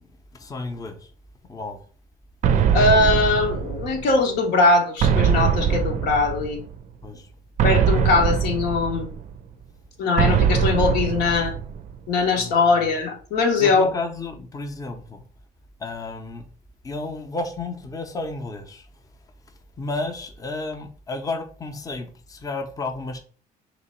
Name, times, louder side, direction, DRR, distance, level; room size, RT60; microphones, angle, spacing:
voice 1, 0.3-1.1 1.5-1.8 7.0-7.3 12.4-12.9 13.6-15.2 15.8-16.4 16.8-18.9 19.8-23.2, left 3 dB, 20° left, 0.6 m, -32 dB
sound 1, 2.4-4.2 5.0-6.7 7.6-9.4 10.2-12.0, right 7 dB, 45° right, 0.4 m, -22 dB
voice 2, 2.7-6.6 7.6-9.1 10.0-11.5 12.1-13.9, left 3 dB, 85° left, 1.1 m, -21 dB
3.1 x 3.0 x 4.3 m
cardioid pair, 110°, 17 cm